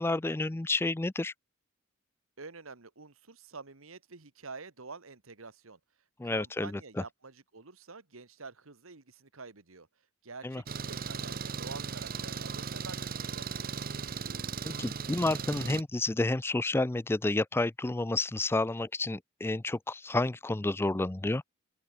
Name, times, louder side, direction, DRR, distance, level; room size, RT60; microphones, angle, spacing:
voice 1, 0.0-1.3 6.2-6.7 10.4-10.6 14.6-21.4, left 2 dB, 10° left, 0.4 m, -30 dB
voice 2, 2.4-5.8 6.2-9.9 10.2-13.8, right 4 dB, 80° right, 1.7 m, -48 dB
Engine, 10.7-15.8, right 5 dB, 45° right, 0.8 m, -37 dB
open air
head